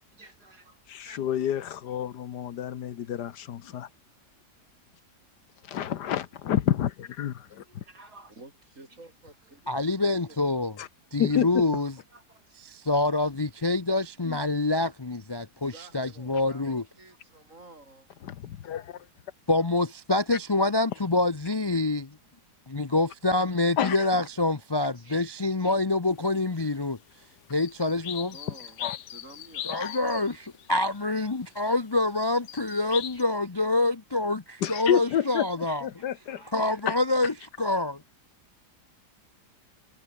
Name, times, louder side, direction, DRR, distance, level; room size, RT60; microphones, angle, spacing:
voice 1, 0.0-1.5 3.0-3.1 5.8-5.9 7.4-8.4 8.9-9.0 11.7-12.8 16.5-16.6 19.6-19.7 21.5-21.6 21.9-22.3 24.8-25.3 25.6-25.8 26.6-26.7 28.5-28.9 32.8-33.2 34.8-35.4 35.6-36.8, right 2 dB, 70° right, 6.2 m, -56 dB
voice 2, 0.9-3.9 5.7-7.8 10.8-10.9 11.2-11.5 14.3-14.4 18.2-19.0 23.8-24.0 28.8-29.0 29.7-29.9 34.6-35.5 35.8-36.4 36.9-37.0, left 10 dB, 80° left, 1.6 m, -29 dB
voice 3, 8.4-10.4 15.6-18.1 27.8-27.9 28.3-30.1, right 2 dB, 50° right, 5.8 m, -51 dB
voice 4, 9.7-10.7 11.1-11.9 12.7-16.8 19.5-22.2 22.7-27.0 27.5-28.3 29.7-35.9 36.5-38.0, left 2 dB, 25° left, 0.5 m, -26 dB
sound 1, 27.6-31.7 32.4-33.2, left 11 dB, 60° left, 0.8 m, -40 dB
omnidirectional pair, 1.8 m